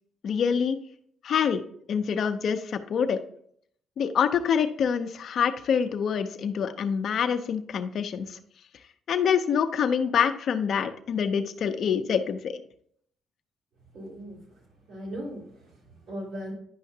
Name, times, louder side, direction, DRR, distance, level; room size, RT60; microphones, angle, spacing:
voice 1, 0.2-0.8 1.2-1.6 1.9-3.2 4.0-8.4 9.1-12.6, left 7 dB, 60° left, 8 dB, 0.6 m, -26 dB
voice 2, 13.9-16.5, equal, 75° right, -4 dB, 3.2 m, -39 dB
10.0 x 5.6 x 2.8 m, 0.65 s
cardioid pair, 90°, 0 cm